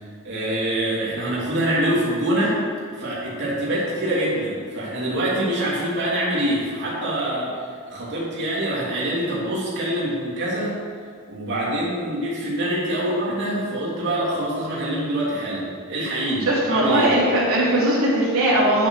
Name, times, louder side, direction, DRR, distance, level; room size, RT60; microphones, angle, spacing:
voice 1, 0.2-2.6 2.9-7.5 7.9-10.8 11.3-17.1, right 1 dB, 55° right, -6 dB, 3.1 m, -25 dB
voice 2, 16.5-18.9, right 1 dB, 85° right, -6 dB, 3.1 m, -19 dB
9.7 x 7.9 x 6.5 m, 2.1 s
head